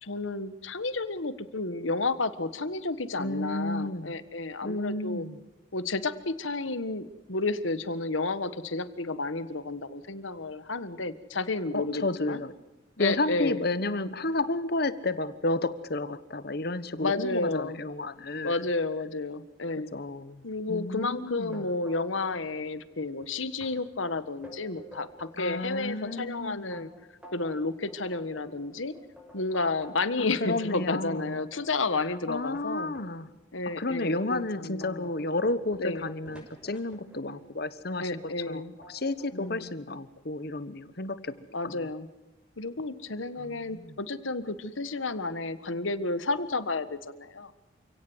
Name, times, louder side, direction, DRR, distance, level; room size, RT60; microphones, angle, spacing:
voice 1, 0.0-5.2 5.7-12.4 13.0-13.6 17.0-17.8 18.4-19.9 20.4-26.9 27.3-28.9 29.3-32.9 33.5-35.1 35.8-36.1 38.0-38.7 39.3-39.7 41.5-42.1 42.6-47.5, left 3 dB, 85° left, 13 dB, 1.5 m, -31 dB
voice 2, 3.2-4.1 4.6-5.4 11.7-12.5 13.0-18.6 19.9-20.4 20.7-21.6 25.4-26.9 30.4-31.4 32.3-33.3 33.8-38.2 38.5-38.6 38.9-41.3 41.6-41.9 43.4-43.9, left 2 dB, 55° left, 14 dB, 1.3 m, -31 dB
sound 1, 21.5-22.4 22.7-23.2 23.6-23.7 24.2-25.3 25.8-30.1 30.5-33.1 33.7-33.8 34.3-37.4 38.2-38.5 38.8-39.6, equal, 5° right, 6.2 m, -50 dB
28.5 x 17.5 x 8.1 m, 1.0 s
head